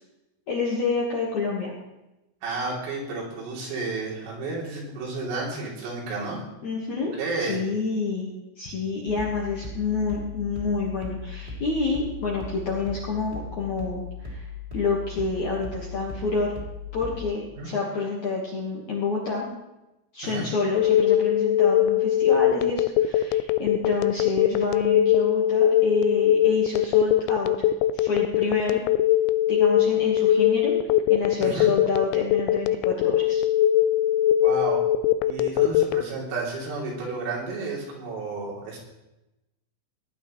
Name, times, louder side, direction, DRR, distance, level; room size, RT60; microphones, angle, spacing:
voice 1, 0.5-1.7 6.6-7.1 7.4-14.4 14.7-16.5 16.9-19.5 20.1-27.5 27.9-28.8 29.5-30.7 31.1-33.4, left 3 dB, 60° left, -4 dB, 2.0 m, -28 dB
voice 2, 2.4-6.4 7.2-7.6 17.6-17.7 20.2-20.5 31.4-31.7 34.4-34.9 35.3-38.8, right 3 dB, 80° right, -4 dB, 5.9 m, -31 dB
sound 1, 9.1-17.2, left 4 dB, 10° right, 2.0 m, -38 dB
Telephone, 20.7-36.0, left 12 dB, 90° left, 2.5 m, -20 dB
18.5 x 11.5 x 3.2 m, 0.96 s
omnidirectional pair, 5.7 m